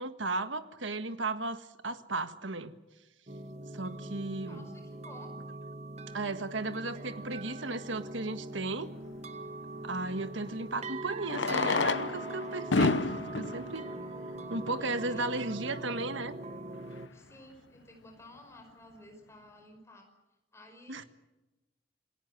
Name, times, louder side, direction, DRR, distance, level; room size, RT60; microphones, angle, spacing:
voice 1, 0.0-2.7 3.7-4.6 6.1-8.9 9.8-13.9 14.5-16.3 20.9-21.0, right 2 dB, 80° right, 10 dB, 1.5 m, -35 dB
sound 1, 3.3-17.1, right 2 dB, 35° right, 1.5 m, -42 dB
voice 2, 4.5-5.3 14.8-15.6 17.1-20.1 20.5-21.1, left 1 dB, 15° left, 4 dB, 5.4 m, -53 dB
Fireworks, 7.7-7.8 10.1-10.2 11.2-15.0 15.7-15.8 16.0-16.1 16.3-16.4 17.0-17.2, left 3 dB, 75° left, 0.9 m, -31 dB
27.5 x 19.0 x 7.8 m, 1.1 s
head